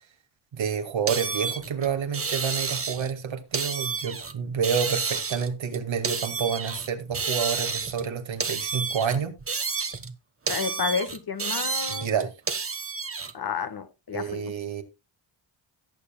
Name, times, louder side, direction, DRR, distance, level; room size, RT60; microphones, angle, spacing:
voice 1, 0.5-9.3 11.9-12.3 14.1-14.8, right 7 dB, 65° right, 2.2 m, -29 dB
sound 1, 1.1-3.2 3.5-4.3 4.6-6.9 7.1-8.1 8.4-10.1 10.5-13.3, right 5 dB, 25° right, 1.3 m, -30 dB
voice 2, 10.5-12.1 13.3-14.5, left 6 dB, 45° left, 1.5 m, -31 dB
17.5 x 6.9 x 2.3 m
cardioid pair, 65°, 50 cm